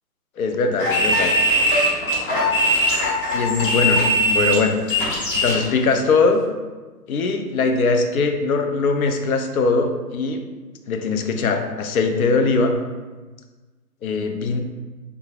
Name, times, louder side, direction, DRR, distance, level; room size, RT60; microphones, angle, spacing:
voice 1, 0.4-1.3 3.3-4.8 5.3-6.4 7.1-10.4 10.9-12.8 14.0-14.6, left 4 dB, 60° left, 6 dB, 0.5 m, -21 dB
sound 1, 0.8-5.6, equal, 35° left, 0.8 m, -20 dB
3.4 x 2.5 x 3.3 m, 1.3 s
hypercardioid pair, 145°, 48 cm